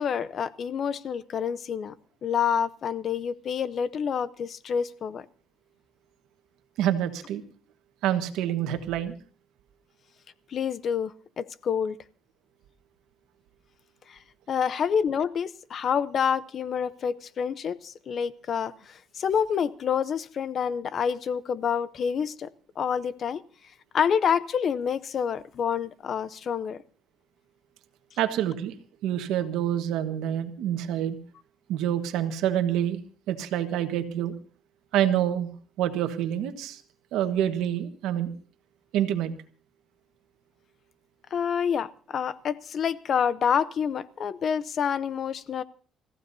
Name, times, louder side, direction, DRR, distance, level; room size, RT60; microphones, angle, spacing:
voice 1, 0.0-1.9 2.2-5.3 10.5-12.0 14.1-14.2 14.5-22.5 22.8-23.4 23.9-26.8 41.3-45.6, left 7 dB, 50° left, 0.7 m, -28 dB
voice 2, 6.8-7.4 8.0-9.2 28.2-28.7 29.0-31.2 31.7-33.0 33.3-34.3 34.9-35.5 35.8-36.8 37.1-38.3 38.9-39.3, right 11 dB, 85° right, 1.4 m, -27 dB
29.0 x 15.0 x 2.7 m
cardioid pair, 105°, 0 cm